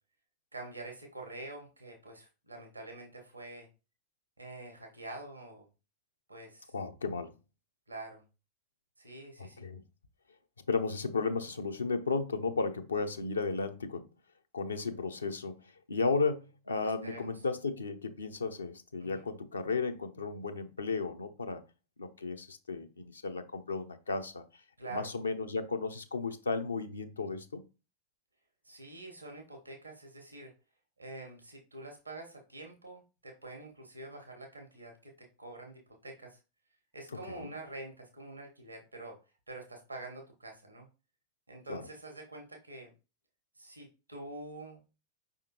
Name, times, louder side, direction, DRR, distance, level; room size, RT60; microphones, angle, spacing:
voice 1, 0.5-3.7 4.4-5.7 6.3-6.7 7.9-8.2 9.0-9.7 16.8-17.4 19.0-19.3 24.8-25.1 28.6-30.5 31.0-36.4 36.9-39.2 39.5-40.9 41.5-42.9 43.6-44.8, right 2 dB, 85° right, 1.1 m, -46 dB
voice 2, 6.7-7.3 9.4-9.8 10.7-14.1 14.5-15.6 15.9-21.6 22.0-24.4 24.9-27.6 37.3-37.5 41.7-41.8, left 4 dB, 75° left, 0.5 m, -34 dB
5.1 x 3.5 x 2.9 m
figure-of-eight pair, 90°, 0 cm